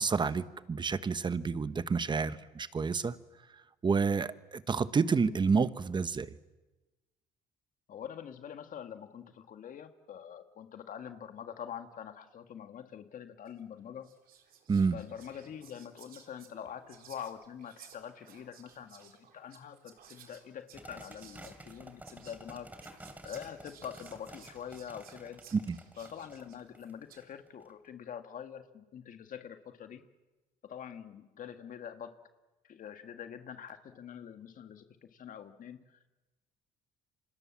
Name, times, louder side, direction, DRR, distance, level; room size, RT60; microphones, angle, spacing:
voice 1, 0.0-3.2 3.8-6.4 14.7-15.0 25.5-25.7, right 5 dB, 25° right, 1.1 m, -29 dB
voice 2, 7.9-14.1 14.9-23.0 23.2-25.4 26.0-30.0 30.6-32.1 32.6-36.1, left 8 dB, 50° left, 1.9 m, -45 dB
Whispering, 13.5-13.7 14.0-27.3, right 8 dB, 60° right, 3.8 m, -58 dB
sound 1, 20.7-27.7, right 1 dB, 10° right, 3.2 m, -51 dB
30.0 x 25.5 x 7.4 m
cardioid pair, 110°, 17 cm